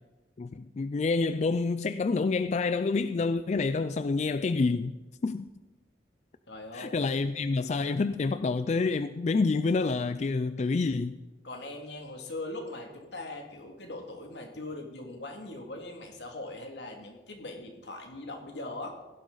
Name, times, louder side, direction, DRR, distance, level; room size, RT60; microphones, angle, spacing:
voice 1, 0.4-5.0 5.2-5.5 6.7-11.2, left 4 dB, 40° left, 0.3 m, -28 dB
voice 2, 6.5-7.3 11.4-18.9, left 2 dB, 80° left, 2.3 m, -41 dB
16.5 x 11.5 x 4.0 m
head